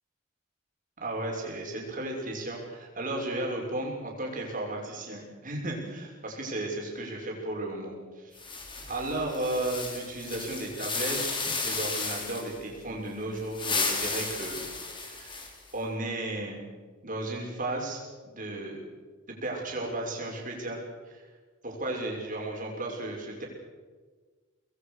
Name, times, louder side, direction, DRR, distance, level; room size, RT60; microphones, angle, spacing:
voice 1, 1.0-8.4 8.9-14.6 15.0-15.4 15.7-16.6 17.0-18.9 19.4-20.8 21.1-21.2 21.6-23.5, right 2 dB, 40° right, -1 dB, 6.2 m, -34 dB
sound 1, 8.4-12.6 13.4-15.7, left 4 dB, 25° left, 4.0 m, -33 dB
26.0 x 20.5 x 6.6 m, 1.4 s
head